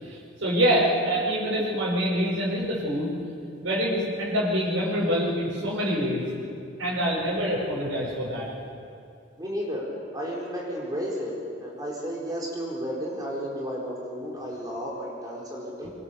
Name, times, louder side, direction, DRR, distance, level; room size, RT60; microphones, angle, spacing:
voice 1, 0.0-3.1 3.6-6.2 6.8-8.5, equal, 90° right, -7 dB, 6.5 m, -25 dB
voice 2, 9.4-9.8 10.1-11.3 11.6-15.9, equal, 20° right, -3 dB, 4.4 m, -32 dB
25.5 x 24.0 x 7.0 m, 2.5 s
head